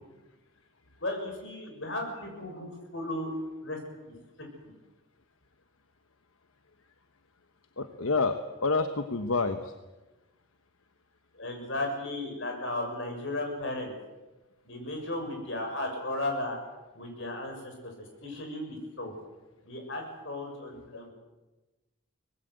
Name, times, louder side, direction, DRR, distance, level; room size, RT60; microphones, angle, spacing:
voice 1, 1.0-3.3 3.6-3.8 4.6-4.7 11.3-13.9 14.6-16.6 16.9-19.1 19.6-21.1, left 1 dB, 60° left, 3 dB, 6.7 m, -35 dB
voice 2, 7.8-9.7 20.9-21.0, left 3 dB, 80° left, 8 dB, 1.2 m, -28 dB
24.0 x 20.0 x 7.9 m, 1.1 s
head